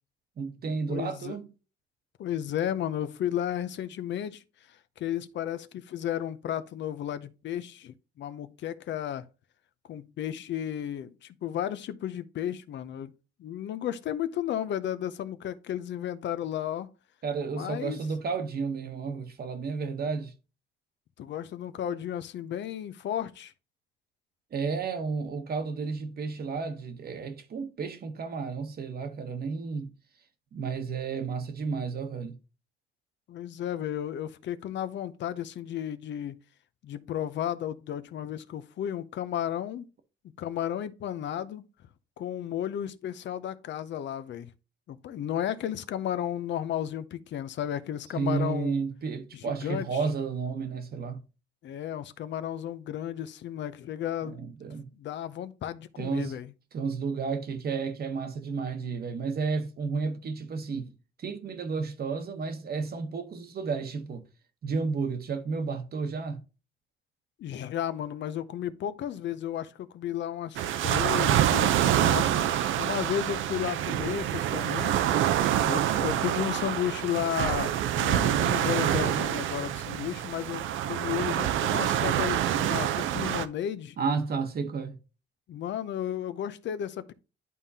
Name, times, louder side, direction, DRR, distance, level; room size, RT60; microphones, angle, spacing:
voice 1, 0.4-1.5 17.2-20.3 24.5-29.9 30.5-32.3 48.1-51.2 54.2-54.9 56.0-56.4 56.7-60.9 61.2-64.3 64.6-66.4 84.0-85.0, right 5 dB, 50° right, 1.0 m, -32 dB
voice 2, 0.9-1.4 2.2-9.3 9.9-13.1 13.4-16.9 17.5-18.0 21.2-23.5 33.3-36.4 36.8-39.9 40.4-41.7 42.2-44.5 44.9-48.8 49.3-49.9 51.6-54.4 55.0-56.5 67.4-72.3 72.8-75.1 75.6-84.0 85.5-87.1, left 10 dB, 65° left, 0.6 m, -33 dB
sound 1, 70.6-83.5, right 11 dB, 80° right, 0.5 m, -26 dB
11.0 x 3.7 x 2.7 m
cardioid pair, 90°, 20 cm